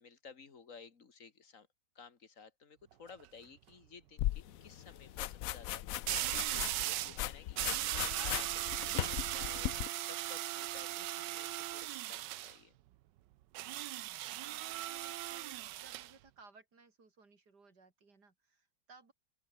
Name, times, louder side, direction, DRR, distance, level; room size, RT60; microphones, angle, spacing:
voice 1, 0.0-1.7 2.0-12.8, left 5 dB, 40° left, 2.4 m, -55 dB
sound 1, 2.9-3.3 6.1-7.2 7.6-12.6 13.5-16.1, right 15 dB, 75° right, 1.2 m, -38 dB
sound 2, 4.2-9.9, left 13 dB, 80° left, 0.7 m, -38 dB
voice 2, 14.4-19.1, right 4 dB, 55° right, 4.0 m, -60 dB
open air
omnidirectional pair, 2.1 m